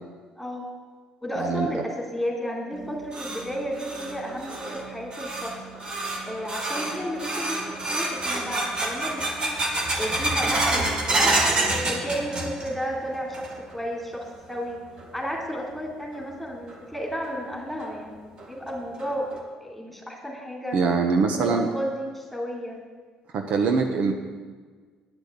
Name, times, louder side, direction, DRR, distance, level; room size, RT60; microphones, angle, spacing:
voice 1, 0.3-0.7 1.2-5.6 6.2-11.4 11.8-14.8 15.1-19.3 19.6-20.8 21.3-22.8, equal, 5° left, 0 dB, 3.3 m, -33 dB
voice 2, 1.4-1.7 20.7-21.7 23.3-24.1, right 4 dB, 65° right, 4 dB, 1.1 m, -23 dB
sound 1, 2.7-12.9 13.1-13.8 14.1-14.2 15.0-15.1 16.7-16.8 17.2-17.3 17.8-17.9 18.4-18.5 19.0-19.4, right 2 dB, 40° right, 2.3 m, -28 dB
10.5 x 6.3 x 8.7 m, 1.5 s
cardioid pair, 90°, 2 cm